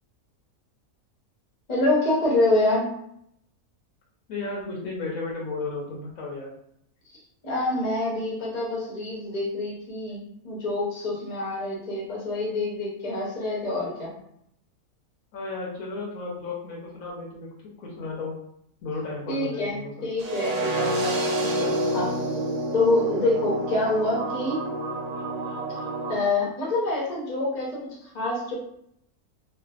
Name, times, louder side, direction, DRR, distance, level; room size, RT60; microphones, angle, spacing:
voice 1, 1.7-2.9 7.4-14.1 19.3-22.1 22.7-24.6 26.1-28.5, left 2 dB, 35° left, -4 dB, 0.7 m, -26 dB
voice 2, 4.3-6.5 15.3-18.4 18.8-20.1, left 3 dB, 70° left, -2 dB, 1.0 m, -34 dB
sound 1, 20.2-26.2, right 1 dB, 80° right, 1.1 m, -28 dB
2.5 x 2.4 x 2.3 m, 0.73 s
omnidirectional pair, 1.6 m